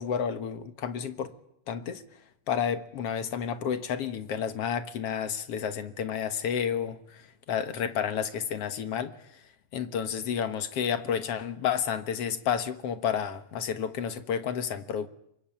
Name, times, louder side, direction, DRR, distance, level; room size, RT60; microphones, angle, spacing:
voice 1, 0.0-1.3 1.7-2.0 2.5-9.1 9.7-15.1, left 8 dB, 55° left, 10 dB, 2.0 m, -31 dB
25.5 x 22.5 x 8.9 m, 0.77 s
omnidirectional pair, 3.9 m